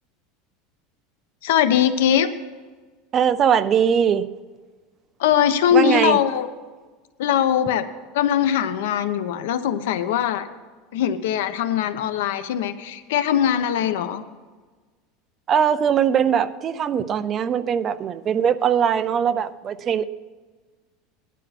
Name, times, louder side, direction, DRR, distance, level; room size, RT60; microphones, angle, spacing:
voice 1, 1.4-2.3 5.2-6.5 7.2-7.9 8.1-10.5 10.9-14.2, left 9 dB, 80° left, 1.1 m, -21 dB
voice 2, 3.1-4.3 5.7-6.2 15.5-20.0, right 8 dB, 25° right, 0.5 m, -21 dB
18.5 x 11.5 x 4.3 m
supercardioid pair, 165°, 0 cm